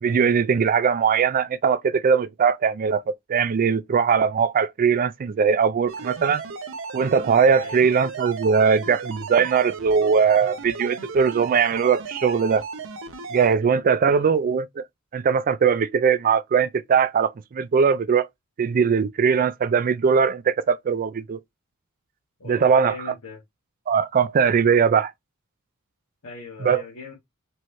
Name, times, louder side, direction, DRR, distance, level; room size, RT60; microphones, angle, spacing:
voice 1, 0.0-6.4 6.9-12.6 13.3-14.8 15.1-18.3 18.6-21.4 22.5-23.0 23.9-25.1 26.6-26.8, right 6 dB, 40° right, 0.3 m, -20 dB
sound 1, 5.9-13.5, right 5 dB, 60° right, 0.7 m, -36 dB
voice 2, 7.6-7.9 14.0-14.3 22.4-23.4 26.2-27.1, left 3 dB, 75° left, 1.4 m, -40 dB
4.6 x 3.0 x 3.1 m
head